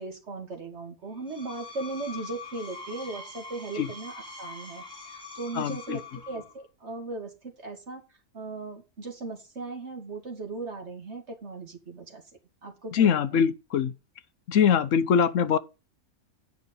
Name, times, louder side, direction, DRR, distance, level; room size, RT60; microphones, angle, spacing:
voice 1, 0.0-8.0 8.3-12.2 12.6-13.4, right 3 dB, 50° right, 2.7 m, -38 dB
Screech, 1.1-6.6, left 4 dB, 5° left, 3.4 m, -43 dB
voice 2, 5.5-6.0 12.9-13.9 14.5-15.6, left 7 dB, 65° left, 1.1 m, -23 dB
9.3 x 5.8 x 5.4 m
omnidirectional pair, 1.5 m